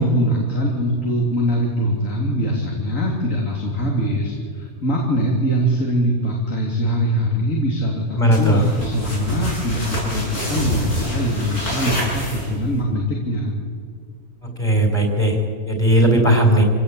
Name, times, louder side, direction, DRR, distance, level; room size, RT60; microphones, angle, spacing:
voice 1, 0.0-13.5, equal, 60° left, -2 dB, 3.6 m, -22 dB
voice 2, 8.1-8.6 14.4-15.4 15.6-16.6, right 1 dB, 25° left, 2 dB, 3.9 m, -17 dB
sound 1, 8.3-12.8, equal, 85° left, 8.6 m, -26 dB
27.0 x 17.5 x 8.5 m, 2.1 s
omnidirectional pair, 1.6 m